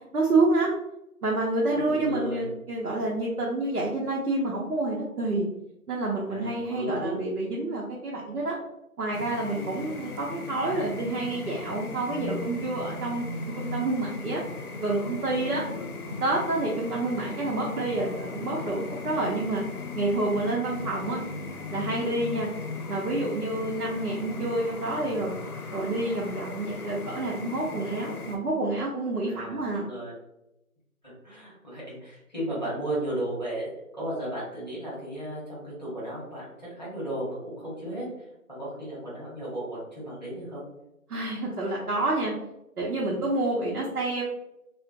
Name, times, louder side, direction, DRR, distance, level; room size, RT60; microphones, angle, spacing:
voice 1, 0.1-0.7 1.2-5.5 5.9-8.6 9.0-13.2 13.6-14.4 14.8-15.6 16.2-19.6 19.9-21.2 21.7-22.5 22.9-25.3 25.7-29.8 41.1-42.3 42.8-44.2, right 2 dB, 80° right, -4 dB, 0.7 m, -28 dB
voice 2, 1.7-2.5 6.3-7.2 9.5-9.7 29.2-30.1 31.0-40.6 43.1-43.2, right 1 dB, 30° left, -9 dB, 1.0 m, -35 dB
sound 1, 9.1-28.4, left 3 dB, 80° left, 0.6 m, -37 dB
2.5 x 2.1 x 2.4 m, 0.87 s
figure-of-eight pair, 175°, 44 cm